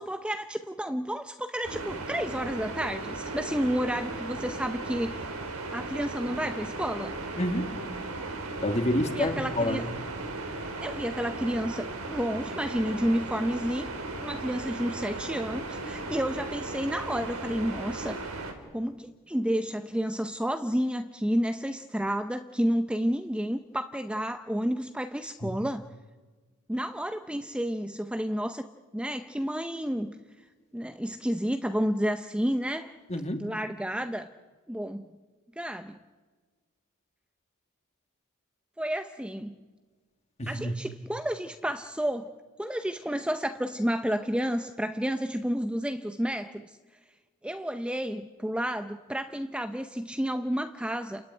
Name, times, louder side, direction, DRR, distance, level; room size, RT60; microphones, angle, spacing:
voice 1, 0.0-5.3 5.7-7.2 9.1-9.9 10.8-13.9 14.2-18.3 18.7-25.8 26.7-28.7 28.9-30.2 30.7-33.0 33.4-34.3 34.7-35.1 35.6-36.0 38.8-39.5 40.5-42.3 42.6-46.8 47.4-51.2, equal, 5° right, 8 dB, 0.6 m, -30 dB
sound 1, 1.6-18.5, right 2 dB, 80° right, 3.5 m, -36 dB
voice 2, 7.4-7.7 8.6-9.9 25.4-25.5 33.1-33.4 40.4-40.7, left 1 dB, 30° left, 6 dB, 2.1 m, -28 dB
29.0 x 15.0 x 9.9 m, 1.4 s
head